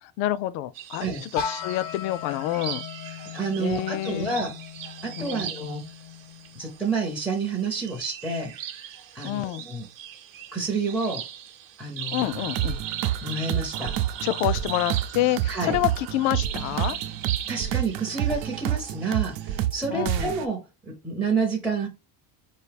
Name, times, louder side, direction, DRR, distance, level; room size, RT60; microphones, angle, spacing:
voice 1, 0.0-2.8 3.6-4.4 5.2-5.5 9.2-9.6 12.1-12.8 14.2-17.0 19.9-20.3, left 14 dB, 70° left, 0.5 m, -28 dB
sound 1, 0.7-19.6, right 10 dB, 45° right, 0.8 m, -39 dB
sound 2, 1.4-7.2, left 7 dB, 85° left, 1.0 m, -38 dB
voice 2, 3.3-4.6 5.0-5.8 6.5-8.5 9.1-9.9 10.5-11.3 11.8-12.3 13.2-14.0 15.5-15.8 17.5-21.9, right 4 dB, ahead, 0.4 m, -29 dB
sound 3, 12.2-20.4, right 12 dB, 85° right, 0.7 m, -29 dB
4.6 x 2.7 x 3.3 m
cardioid pair, 175°, 47 cm